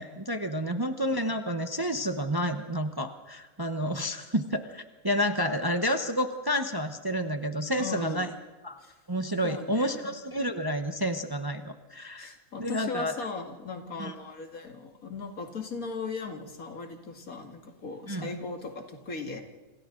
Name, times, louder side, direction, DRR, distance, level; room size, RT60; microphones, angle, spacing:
voice 1, 0.0-8.3 8.6-8.8 9.1-13.2 14.0-14.1 18.1-18.3, equal, 20° right, 7 dB, 0.9 m, -30 dB
voice 2, 7.7-8.3 8.8-9.0 9.4-10.1 12.2-19.4, left 4 dB, 70° left, 4 dB, 2.6 m, -38 dB
29.5 x 27.0 x 3.9 m, 1.2 s
omnidirectional pair, 1.5 m